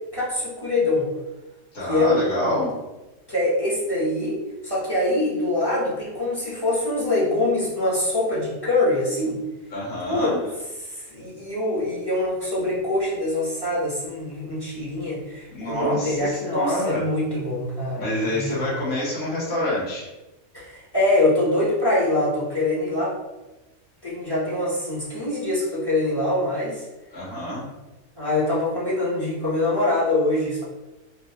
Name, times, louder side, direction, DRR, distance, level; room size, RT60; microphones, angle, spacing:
voice 1, 0.1-1.1 1.9-2.6 3.3-9.4 10.0-10.3 10.9-18.7 20.5-23.2 24.0-26.8 28.2-30.6, left 2 dB, 20° left, -7 dB, 0.9 m, -24 dB
voice 2, 1.7-2.8 9.7-10.4 15.5-17.0 18.0-20.1 27.1-27.7, left 1 dB, 80° left, -8 dB, 1.9 m, -27 dB
3.7 x 2.5 x 2.8 m, 1.0 s
omnidirectional pair, 1.5 m